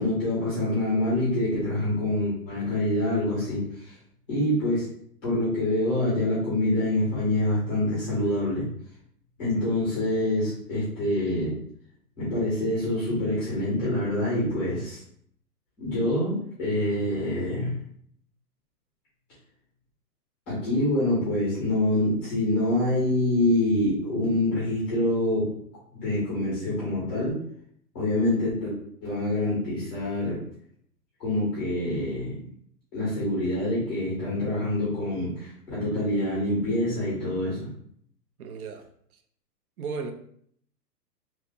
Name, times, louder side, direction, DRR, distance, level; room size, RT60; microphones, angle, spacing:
voice 1, 0.0-3.9 4.3-4.8 5.2-8.7 9.4-11.6 12.2-15.0 15.8-17.8 20.5-25.5 25.9-27.4 27.9-28.7 29.0-30.4 31.2-32.4 32.9-37.7, left 1 dB, 5° left, 0.5 m, -26 dB
voice 2, 38.4-38.9 39.8-40.1, right 5 dB, 60° right, 0.6 m, -34 dB
2.8 x 2.4 x 3.8 m
hypercardioid pair, 155°, 49 cm